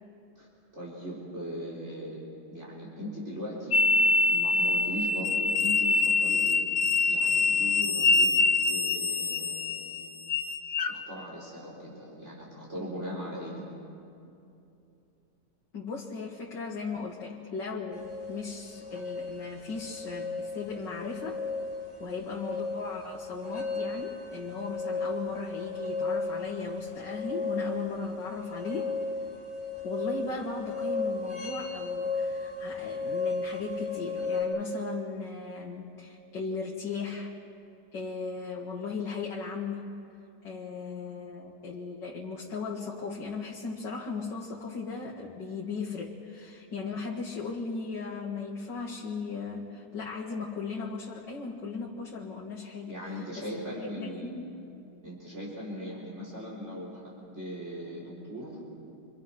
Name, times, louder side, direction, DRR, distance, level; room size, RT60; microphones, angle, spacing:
voice 1, 0.7-2.2 2.5-3.9 4.3-8.4 8.7-10.1 10.9-13.6 52.9-54.4 55.0-58.6, equal, 40° right, -5 dB, 4.4 m, -39 dB
sound 1, 3.7-10.9, left 3 dB, 50° left, 1.3 m, -25 dB
voice 2, 15.7-21.4 22.0-29.0 29.8-37.4 37.9-39.9 40.4-52.9 53.4-53.5 54.0-54.6, left 4 dB, 80° left, -3 dB, 2.5 m, -37 dB
sound 2, 17.9-34.4, left 4 dB, 5° left, 5.5 m, -35 dB
28.0 x 25.5 x 6.0 m, 2.7 s
omnidirectional pair, 1.9 m